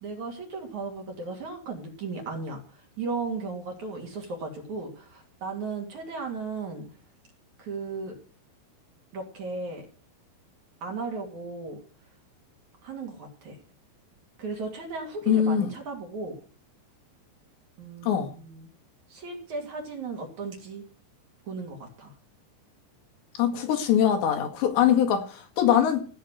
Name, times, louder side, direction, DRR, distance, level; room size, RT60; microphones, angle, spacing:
voice 1, 0.0-6.9 7.6-8.1 9.1-9.9 10.8-11.8 12.8-13.6 14.4-16.4 17.8-18.7 19.1-20.8 21.5-22.1, right 4 dB, 45° right, 3.8 m, -36 dB
voice 2, 15.3-15.7 18.0-18.3 23.4-26.1, left 9 dB, 70° left, 4.0 m, -22 dB
17.5 x 6.5 x 9.6 m
omnidirectional pair, 5.5 m